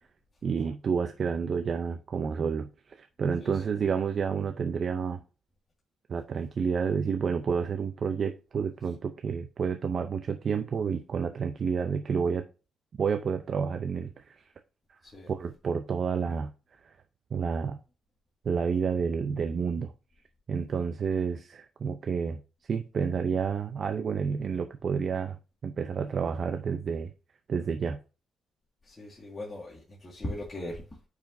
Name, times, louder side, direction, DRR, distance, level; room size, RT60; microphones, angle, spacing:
voice 1, 0.4-5.2 6.1-12.5 13.0-14.3 15.3-16.5 17.3-17.8 18.4-19.9 20.5-22.4 22.7-25.4 25.6-27.1 27.5-28.0, right 6 dB, 45° right, 0.5 m, -30 dB
voice 2, 28.9-30.8, left 1 dB, 25° left, 1.9 m, -38 dB
9.0 x 4.9 x 2.6 m
cardioid pair, 115°, 0 cm